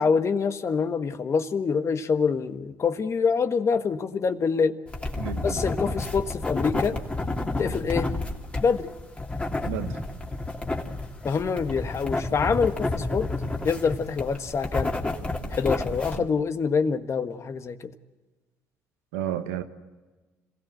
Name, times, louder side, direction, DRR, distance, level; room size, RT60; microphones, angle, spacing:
voice 1, 0.0-4.8 5.4-7.0 7.6-8.1 8.6-8.9 11.2-13.3 13.6-14.9 15.5-17.9, left 5 dB, 45° left, 9 dB, 1.5 m, -25 dB
sound 1, 4.9-16.2, left 2 dB, 20° left, 3.0 m, -30 dB
voice 2, 5.2-5.6 9.6-10.0 16.2-16.3 19.1-19.6, right 11 dB, 90° right, 7 dB, 1.5 m, -31 dB
27.0 x 16.5 x 7.9 m, 1.2 s
supercardioid pair, 65°, 7 cm